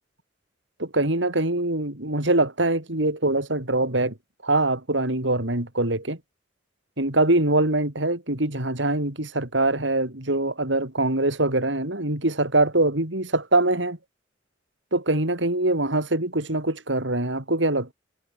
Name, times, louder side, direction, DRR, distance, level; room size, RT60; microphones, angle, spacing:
voice 1, 0.8-4.1 4.4-6.2 7.0-14.0 14.9-17.9, right 2 dB, 85° right, 4.7 m, -23 dB
head